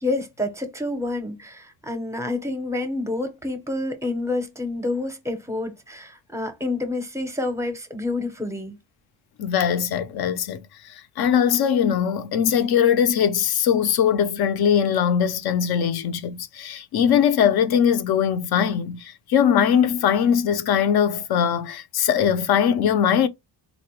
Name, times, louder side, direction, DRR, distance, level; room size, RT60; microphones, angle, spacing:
voice 1, 0.0-8.8, left 2 dB, 5° right, 0.6 m, -28 dB
voice 2, 9.4-10.7 11.2-23.3, left 8 dB, 60° left, 0.6 m, -21 dB
4.1 x 2.1 x 2.9 m
cardioid pair, 145°, 43 cm